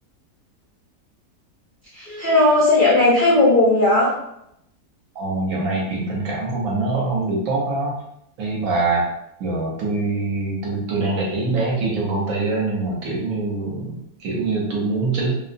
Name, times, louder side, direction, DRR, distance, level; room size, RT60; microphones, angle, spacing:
voice 1, 1.9-4.1, left 2 dB, 60° left, -7 dB, 0.5 m, -16 dB
voice 2, 5.2-7.9 8.4-9.1 9.4-15.3, right 3 dB, 65° right, -3 dB, 1.1 m, -24 dB
2.6 x 2.0 x 2.5 m, 0.78 s
omnidirectional pair, 1.7 m